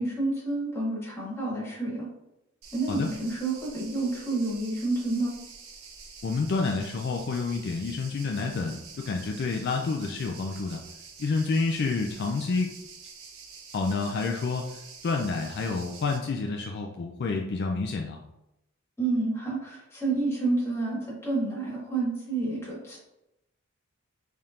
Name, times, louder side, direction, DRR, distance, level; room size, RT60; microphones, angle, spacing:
voice 1, 0.0-2.1 2.7-5.3 19.0-23.0, right 2 dB, 15° left, -6 dB, 1.4 m, -29 dB
sound 1, 2.6-16.2, right 5 dB, 90° right, 0.7 m, -47 dB
voice 2, 6.2-10.8 11.2-12.7 13.7-14.8 15.0-18.2, left 4 dB, 50° left, 1 dB, 0.4 m, -29 dB
4.2 x 3.5 x 2.4 m, 0.89 s
head